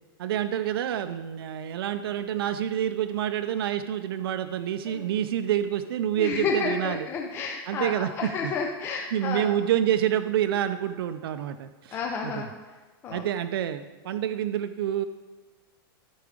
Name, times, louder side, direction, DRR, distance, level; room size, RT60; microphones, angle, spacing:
voice 1, 0.2-7.1 7.7-8.5 9.1-12.4 13.1-15.0, right 10 dB, 80° right, 9 dB, 0.4 m, -28 dB
voice 2, 6.2-9.5 11.9-12.5 13.0-13.2, left 5 dB, 20° left, 0 dB, 0.6 m, -31 dB
13.0 x 4.7 x 5.0 m, 1.3 s
supercardioid pair, 165°, 12 cm